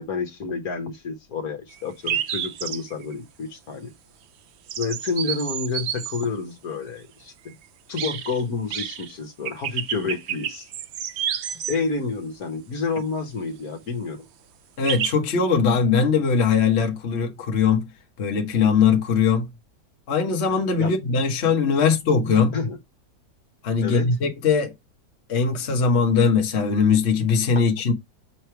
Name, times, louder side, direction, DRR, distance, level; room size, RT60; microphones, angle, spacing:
voice 1, 0.0-3.9 4.8-7.5 7.9-10.7 11.7-14.3 20.8-21.0 21.8-21.9 22.5-22.8 23.8-24.1 27.5-27.6, left 4 dB, 60° left, 1.6 m, -29 dB
sound 1, 1.7-1.8 2.1-3.1 4.7-6.3 8.0-8.4 8.7-9.1 9.4-11.7 14.9-15.1, right 9 dB, 85° right, 0.6 m, -29 dB
voice 2, 14.8-17.9 18.2-19.5 20.1-22.5 23.6-24.7 25.3-27.9, left 5 dB, 45° left, 1.3 m, -20 dB
6.8 x 3.3 x 4.5 m
omnidirectional pair, 1.9 m